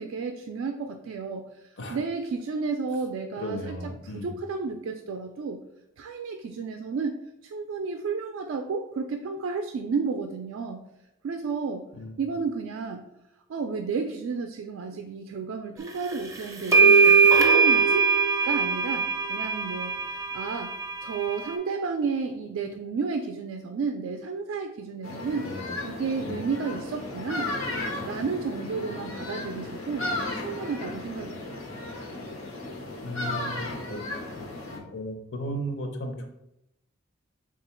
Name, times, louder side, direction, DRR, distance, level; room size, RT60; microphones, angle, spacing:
voice 1, 0.0-3.8 4.0-5.6 6.0-10.9 11.2-11.9 12.2-13.1 13.5-18.1 18.4-25.5 25.8-27.5 28.0-30.0 30.3-31.6, right 4 dB, 80° right, 4 dB, 0.3 m, -32 dB
voice 2, 3.4-4.3 11.9-12.2 25.3-25.8 26.2-26.4 33.0-36.3, equal, 65° left, 4 dB, 0.6 m, -36 dB
sound 1, 16.1-16.2 16.7-21.5, right 5 dB, 15° right, 0.5 m, -21 dB
sound 2, 25.0-34.8, left 2 dB, 90° left, 0.8 m, -35 dB
3.7 x 2.3 x 4.2 m, 0.85 s
head